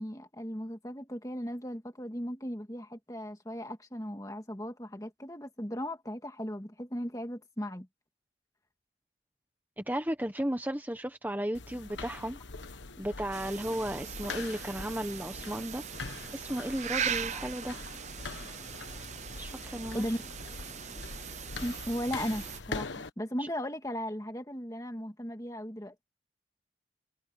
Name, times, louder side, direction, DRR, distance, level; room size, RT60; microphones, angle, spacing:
voice 1, 0.0-7.9 19.9-20.2 21.6-25.9, equal, 20° left, 2.1 m, -37 dB
voice 2, 9.8-12.4 13.0-15.8 16.3-17.8 19.4-20.0, right 1 dB, 10° right, 1.3 m, -34 dB
sound 1, 11.5-23.1, left 3 dB, 85° left, 1.3 m, -43 dB
sound 2, 13.3-22.6, right 8 dB, 40° right, 0.6 m, -40 dB
head